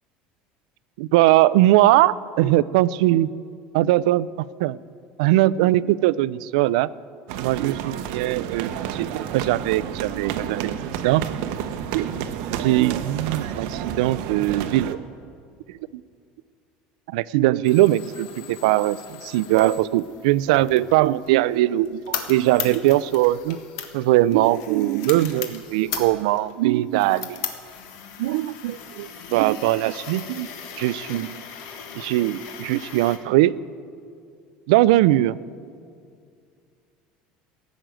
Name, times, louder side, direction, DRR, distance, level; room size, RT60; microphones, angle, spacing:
voice 1, 1.0-3.3 3.7-4.3 4.6-4.8 5.2-6.9 7.4-10.8 11.0-11.3 11.9-15.0 15.9-16.0 17.1-23.6 23.9-27.5 28.2-30.5 30.8-31.4 31.9-33.6 34.7-35.4, right 16 dB, 90° right, 19 dB, 0.3 m, -21 dB
sound 1, 7.3-14.9, right 9 dB, 60° right, 0.7 m, -30 dB
sound 2, 17.6-33.2, left 8 dB, 75° left, 1.4 m, -38 dB
15.5 x 6.4 x 8.9 m, 2.3 s
cardioid pair, 180°, 4 cm